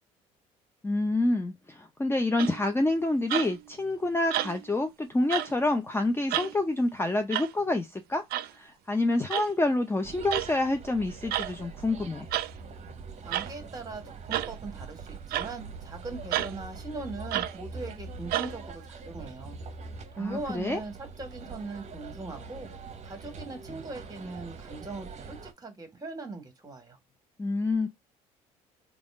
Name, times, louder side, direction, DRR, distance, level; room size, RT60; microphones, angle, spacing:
voice 1, 0.8-8.3 8.5-12.3 20.2-20.8 27.4-27.9, left 2 dB, 15° left, 0.7 m, -27 dB
sound 1, 2.4-2.7 3.3-3.7 4.3-4.8 5.3-5.5 6.3-6.6 7.3-7.5 8.3-8.5 9.3-9.5 10.3-10.5 11.3-11.5 12.3-12.5 13.3-13.5 14.3-14.5 15.3-15.5 16.3-16.5 17.3-17.6 18.3-18.5, right 13 dB, 60° right, 0.5 m, -30 dB
sound 2, 10.0-25.5, right 4 dB, 40° right, 1.0 m, -43 dB
voice 2, 13.2-19.6 20.2-22.7 23.0-27.0, right 3 dB, 20° right, 1.9 m, -40 dB
3.5 x 2.4 x 3.7 m
hypercardioid pair, 60°, 18 cm